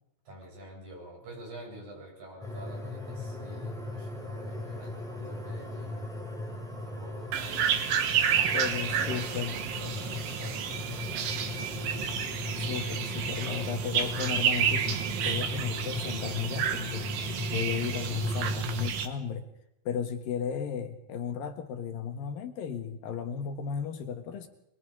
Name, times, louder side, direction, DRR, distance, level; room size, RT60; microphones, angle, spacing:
voice 1, 0.3-6.1 6.8-11.6, right 1 dB, 55° right, -2 dB, 9.5 m, -47 dB
sound 1, 2.4-18.9, left 2 dB, ahead, 4.5 m, -37 dB
sound 2, 7.3-19.1, right 8 dB, 80° right, 3.2 m, -31 dB
voice 2, 8.5-9.7 12.6-17.1 17.5-19.5 19.9-24.5, left 7 dB, 85° left, 6 dB, 3.4 m, -35 dB
25.0 x 22.5 x 5.2 m, 0.80 s
omnidirectional pair, 4.0 m